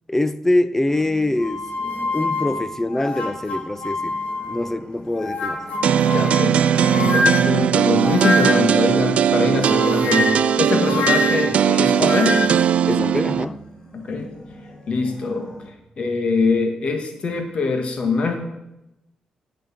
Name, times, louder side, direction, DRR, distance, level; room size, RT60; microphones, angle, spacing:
voice 1, 0.1-1.6 2.1-4.2 4.5-5.6 12.9-13.6, left 1 dB, 15° left, 0.6 m, -23 dB
sound 1, 0.9-15.7, right 1 dB, 35° left, 2.8 m, -42 dB
sound 2, 1.4-4.7 5.1-8.8 9.6-12.7, left 3 dB, 70° left, 1.7 m, -26 dB
sound 3, 5.8-13.4, right 9 dB, 70° right, 0.4 m, -19 dB
voice 2, 6.1-6.6 6.9-12.3 13.9-14.3 14.9-15.5 16.0-18.3, left 3 dB, 55° left, 2.0 m, -23 dB
9.2 x 7.0 x 7.7 m
cardioid pair, 75°, 2 cm